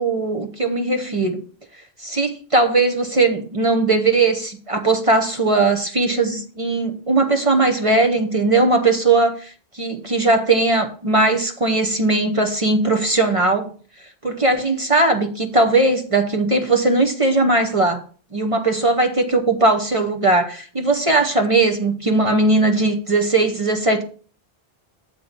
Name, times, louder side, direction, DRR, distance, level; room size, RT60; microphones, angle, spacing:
voice 1, 0.0-1.4 2.0-13.7 14.2-18.0 18.3-24.0, right 2 dB, 35° right, 5 dB, 1.0 m, -19 dB
7.6 x 4.1 x 6.6 m, 0.41 s
omnidirectional pair, 1.1 m